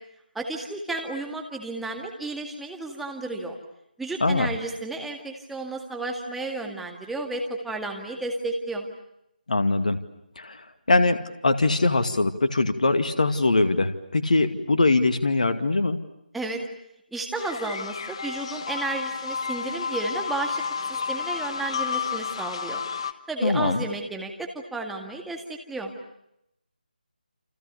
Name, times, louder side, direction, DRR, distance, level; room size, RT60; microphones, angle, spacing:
voice 1, 0.3-3.6 4.0-8.8 16.3-16.6 17.1-20.6 20.9-22.8 23.3-25.9, right 2 dB, ahead, 2 dB, 2.0 m, -32 dB
voice 2, 4.2-4.5 9.5-10.0 10.4-16.0 23.4-23.8, left 2 dB, 55° left, 8 dB, 2.2 m, -22 dB
sound 1, 17.3-23.1, left 6 dB, 35° left, 1.4 m, -31 dB
29.5 x 27.5 x 6.9 m, 0.81 s
figure-of-eight pair, 155°, 5 cm